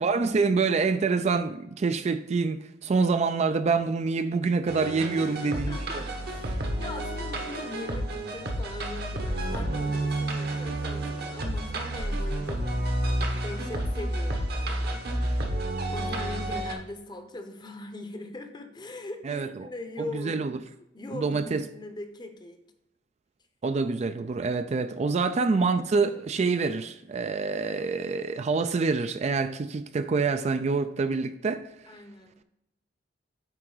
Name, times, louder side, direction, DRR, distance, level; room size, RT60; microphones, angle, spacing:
voice 1, 0.0-5.8 19.2-19.7 20.0-20.6 21.1-21.6 23.6-31.6, right 4 dB, 40° right, 0.3 m, -26 dB
sound 1, 4.7-16.7, right 1 dB, 60° right, 1.1 m, -30 dB
voice 2, 5.1-12.9 13.3-15.0 15.9-20.4 20.9-22.6 31.9-32.4, left 2 dB, 25° left, 0.7 m, -41 dB
9.1 x 3.7 x 3.9 m
head